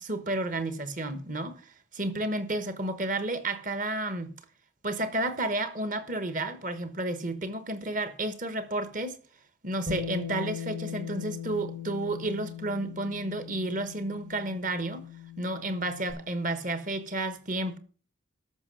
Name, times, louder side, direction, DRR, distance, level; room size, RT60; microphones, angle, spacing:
voice 1, 0.0-4.3 4.8-9.2 9.6-15.1 15.4-17.8, right 2 dB, 40° right, 1.2 m, -31 dB
Bass guitar, 9.9-16.1, left 8 dB, 65° right, 3.8 m, -39 dB
13.0 x 6.0 x 6.3 m
head